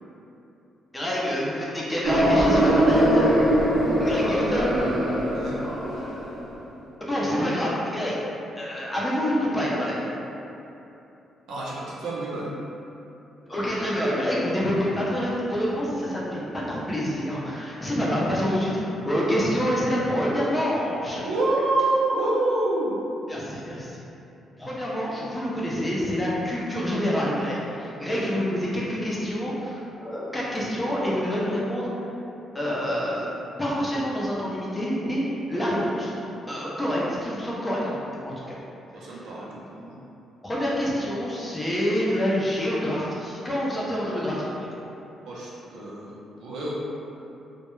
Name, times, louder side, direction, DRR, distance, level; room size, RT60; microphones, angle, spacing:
voice 1, 0.9-3.3 4.0-4.7 7.0-8.2 8.6-10.1 13.5-21.2 23.3-24.0 24.6-31.9 32.5-33.3 33.6-35.2 35.5-36.1 36.5-38.0 38.3-38.6 40.4-44.5, equal, 15° left, -6 dB, 0.5 m, -27 dB
sound 1, 2.0-6.4, right 1 dB, 40° right, 0.7 m, -21 dB
voice 2, 11.5-12.5 21.2-22.9 28.1-28.3 38.9-40.0 45.2-46.1 46.4-46.7, right 2 dB, 80° right, -6 dB, 0.6 m, -27 dB
2.2 x 2.1 x 3.0 m, 2.9 s
cardioid pair, 125°, 0 cm